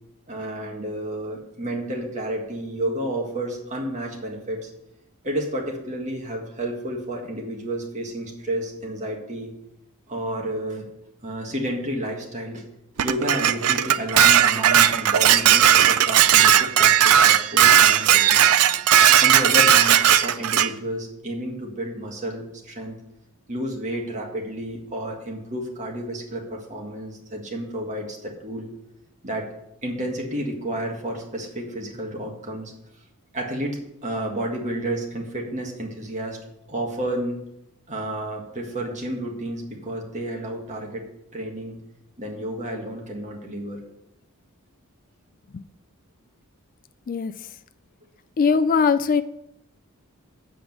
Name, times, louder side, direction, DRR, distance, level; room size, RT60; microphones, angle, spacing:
voice 1, 0.3-4.7 5.2-9.5 10.1-10.8 11.2-12.6 13.0-18.5 19.2-23.0 23.5-28.7 29.2-29.5 29.8-32.7 33.3-36.4 36.7-37.4 37.9-41.0 41.3-41.8 42.2-43.8, right 1 dB, 35° right, 0 dB, 1.8 m, -31 dB
Dishes pots and pans, 13.0-20.7, right 10 dB, 80° right, 0.5 m, -16 dB
voice 2, 48.4-49.2, left 5 dB, 40° left, 13 dB, 0.3 m, -20 dB
8.0 x 5.0 x 7.4 m, 0.83 s
head